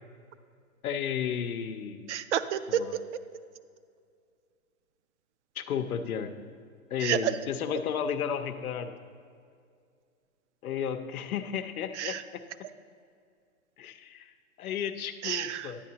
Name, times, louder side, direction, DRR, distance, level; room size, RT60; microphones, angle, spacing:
voice 1, 0.8-2.1 2.7-2.9 5.6-6.3 6.9-8.9 10.6-12.2 13.8-15.8, left 8 dB, 85° left, 8 dB, 0.7 m, -33 dB
voice 2, 2.1-3.4 7.0-7.4 11.9-12.2 15.2-15.7, right 10 dB, 60° right, 13 dB, 0.5 m, -30 dB
10.0 x 8.5 x 2.8 m, 2.3 s
hypercardioid pair, 140°, 42 cm